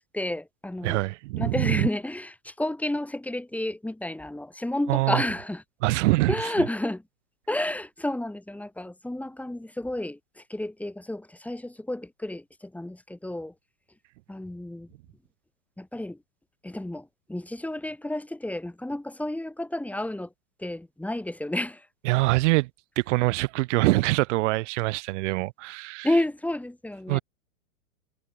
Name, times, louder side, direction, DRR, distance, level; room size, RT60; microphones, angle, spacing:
voice 1, 0.0-1.0 1.4-5.6 6.3-7.0 7.5-13.5 14.3-14.9 15.8-16.2 16.6-20.3 20.6-21.9 26.0-27.2, left 1 dB, 5° left, 6.9 m, -31 dB
voice 2, 0.8-1.9 4.9-5.2 5.8-6.5 22.0-22.7 23.0-26.1 27.1-27.2, right 21 dB, 50° right, 7.8 m, -24 dB
hypercardioid pair, 120°, 45 cm